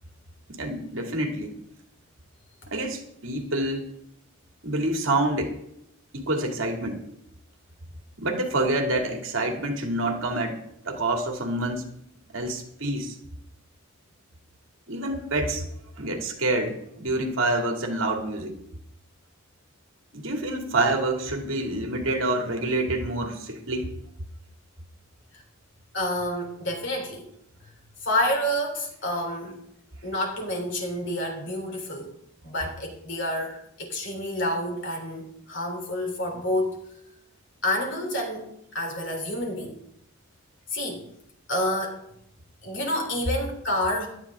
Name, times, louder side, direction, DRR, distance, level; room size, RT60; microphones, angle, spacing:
voice 1, 0.6-1.5 2.7-4.0 4.6-5.5 6.1-7.0 8.2-11.8 12.3-13.1 14.9-15.7 16.0-18.6 20.1-23.9, right 2 dB, 65° right, 2 dB, 2.6 m, -27 dB
voice 2, 25.9-27.2 28.0-29.6 30.0-32.2 32.4-36.8 37.6-38.5 38.7-39.8 40.7-41.0 41.5-42.0 42.6-44.1, left 1 dB, 55° left, 2 dB, 3.6 m, -28 dB
17.0 x 12.0 x 3.7 m, 0.74 s
head